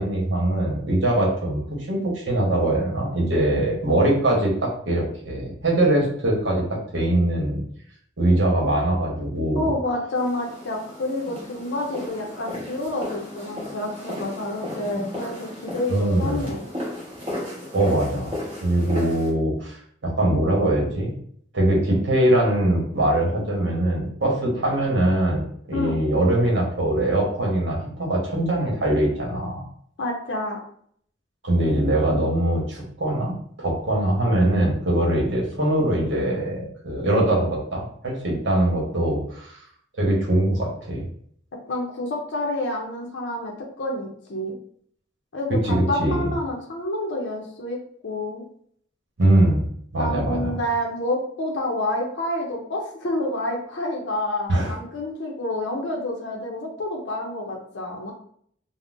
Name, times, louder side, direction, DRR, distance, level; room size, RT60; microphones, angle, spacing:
voice 1, 0.0-7.6 8.2-9.7 15.9-16.5 17.7-18.3 18.6-19.8 20.0-21.1 21.5-29.6 31.4-39.6 40.0-41.0 45.6-46.3 49.2-49.6 49.9-50.6 54.5-54.8, right 1 dB, 75° right, -2 dB, 0.9 m, -22 dB
voice 2, 9.5-16.7 25.7-26.0 30.0-30.6 41.7-44.5 45.3-47.8 48.0-48.4 50.0-58.1, left 1 dB, 70° left, 0 dB, 0.5 m, -28 dB
sound 1, 10.1-19.3, left 1 dB, 25° right, 1.1 m, -35 dB
3.7 x 2.0 x 2.4 m, 0.62 s
head